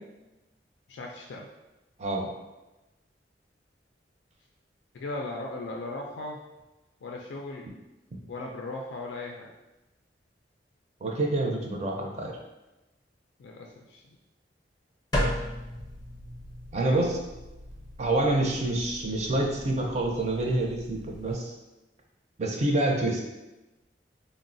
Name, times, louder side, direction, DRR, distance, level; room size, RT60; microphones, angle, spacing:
voice 1, 0.9-1.5 4.9-6.4 7.0-7.7 8.3-9.5 13.4-14.2, left 2 dB, 85° left, 0 dB, 0.3 m, -37 dB
voice 2, 11.0-12.4 16.7-17.2 18.0-21.5 22.4-23.2, right 2 dB, 40° right, 1 dB, 0.5 m, -27 dB
sound 1, 15.1-21.3, equal, 25° left, 0.5 m, -36 dB
3.8 x 2.0 x 2.5 m, 1.0 s
head